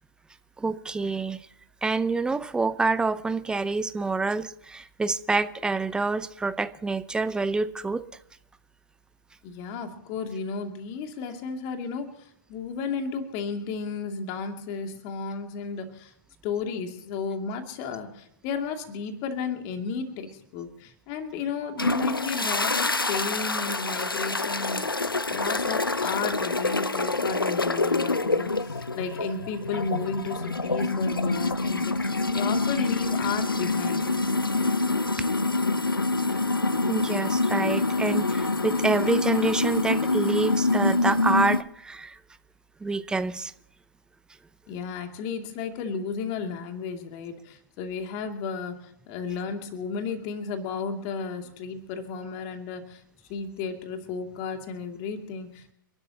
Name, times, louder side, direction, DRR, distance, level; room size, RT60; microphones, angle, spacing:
voice 1, 0.6-1.4 1.8-8.0 36.9-42.2 42.8-43.5, right 3 dB, 5° right, 13 dB, 0.7 m, -27 dB
voice 2, 9.4-16.1 16.4-34.1 44.7-53.0 53.3-55.7, left 5 dB, 35° left, 5 dB, 2.6 m, -33 dB
sound 1, 21.8-41.6, left 3 dB, 85° left, 0.8 m, -26 dB
30.0 x 12.5 x 2.9 m, 0.72 s
figure-of-eight pair, 115°, 11 cm